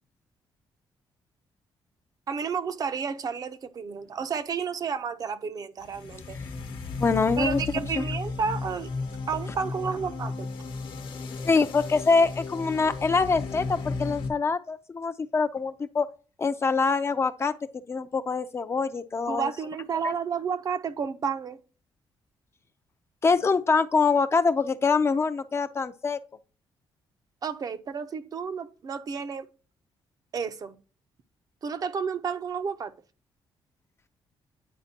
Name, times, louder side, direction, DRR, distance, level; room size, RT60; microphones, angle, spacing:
voice 1, 2.3-6.4 7.4-8.9 9.3-10.5 19.3-21.6 27.4-29.5 30.3-30.8 31.6-32.9, right 6 dB, 45° right, 0.5 m, -31 dB
sound 1, 5.8-14.3, left 3 dB, 65° left, 1.0 m, -35 dB
voice 2, 7.0-7.6 7.9-8.0 11.4-16.1 16.4-17.6 17.9-19.5 23.2-26.2, left 4 dB, 30° left, 0.4 m, -24 dB
9.3 x 4.3 x 2.8 m
cardioid pair, 125°, 9 cm